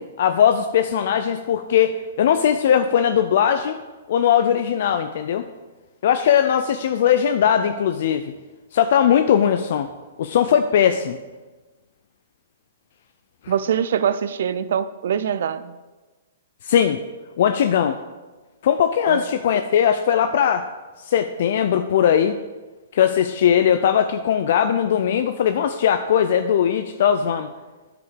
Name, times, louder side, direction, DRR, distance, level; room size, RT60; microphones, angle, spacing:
voice 1, 0.0-3.8 4.1-5.5 6.0-8.2 8.7-9.9 10.2-11.2 13.4-13.5 16.6-17.0 17.4-18.0 18.6-20.7 21.1-22.4 22.9-27.5, left 9 dB, 60° left, 8 dB, 0.4 m, -19 dB
voice 2, 13.5-15.8 19.1-19.2, right 8 dB, 65° right, 14 dB, 0.5 m, -23 dB
9.5 x 5.0 x 5.2 m, 1.2 s
hypercardioid pair, 135°, 0 cm